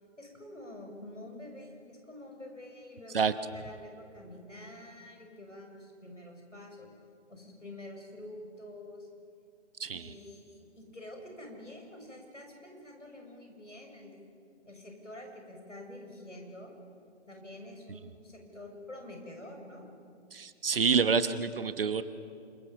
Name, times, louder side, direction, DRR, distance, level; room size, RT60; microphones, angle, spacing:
voice 1, 0.2-6.9 7.3-9.1 9.9-14.1 14.7-16.7 17.3-19.9, left 1 dB, 85° left, 2 dB, 7.0 m, -47 dB
voice 2, 9.8-10.1 20.3-22.0, right 5 dB, 50° right, 12 dB, 1.2 m, -27 dB
27.0 x 23.0 x 7.3 m, 2.4 s
figure-of-eight pair, 140°, 36 cm